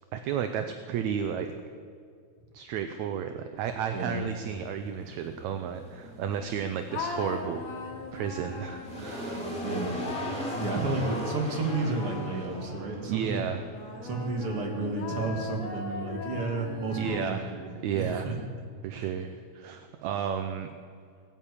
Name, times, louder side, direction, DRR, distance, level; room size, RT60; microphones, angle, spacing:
voice 1, 0.1-1.5 2.5-7.6 8.1-9.5 11.0-11.1 13.0-13.7 17.0-17.5 17.8-18.3 18.8-20.7, right 8 dB, 75° right, 7 dB, 2.0 m, -32 dB
sound 1, 3.6-18.0, equal, ahead, 2.6 m, -41 dB
sound 2, 6.9-13.1 13.7-17.6, left 5 dB, 60° left, 3.1 m, -40 dB
voice 2, 9.3-9.9 10.6-13.4 14.0-17.7 17.9-18.4 18.9-19.1, right 3 dB, 50° right, 1 dB, 2.8 m, -32 dB
18.0 x 9.1 x 8.5 m, 2.3 s
omnidirectional pair, 3.4 m